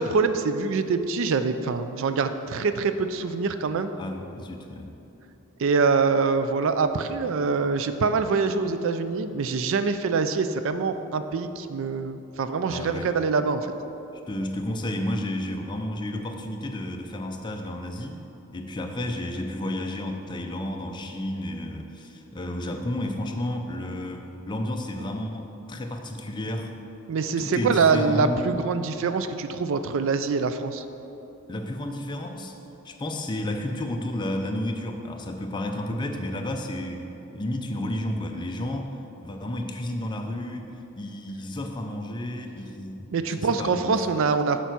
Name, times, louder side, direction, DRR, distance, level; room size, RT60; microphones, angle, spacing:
voice 1, 0.0-3.9 5.6-13.7 27.1-30.8 43.1-44.6, right 4 dB, 60° right, 10 dB, 0.4 m, -24 dB
voice 2, 4.0-4.9 12.7-13.1 14.3-18.2 18.5-26.7 27.4-28.5 31.5-32.5 32.8-38.9 39.2-43.1 43.4-44.0, left 1 dB, 20° left, 3 dB, 0.5 m, -32 dB
6.9 x 4.5 x 5.9 m, 2.9 s
head